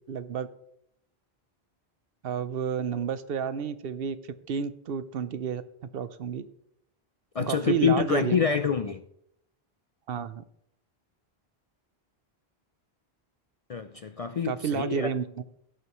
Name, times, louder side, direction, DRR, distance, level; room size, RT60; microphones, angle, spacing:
voice 1, 0.1-0.5 2.2-4.2 4.5-5.6 5.9-6.4 7.4-8.4 10.1-10.4 14.4-15.4, right 7 dB, 70° right, 14 dB, 0.8 m, -30 dB
voice 2, 7.3-9.0 13.7-15.1, left 6 dB, 55° left, 9 dB, 0.4 m, -26 dB
17.0 x 6.5 x 3.0 m, 0.74 s
omnidirectional pair, 1.1 m